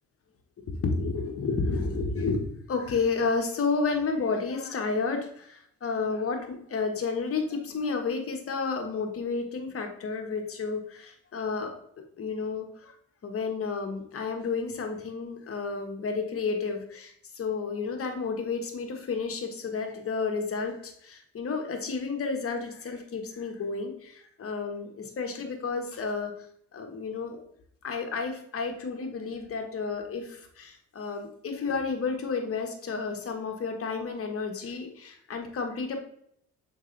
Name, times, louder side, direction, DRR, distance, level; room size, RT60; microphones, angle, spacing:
voice 1, 0.6-11.7 12.2-12.9 13.2-26.3 26.7-27.4 27.8-36.0, left 4 dB, 50° left, 4 dB, 1.4 m, -31 dB
6.5 x 4.8 x 3.3 m, 0.67 s
cardioid pair, 90°, 30 cm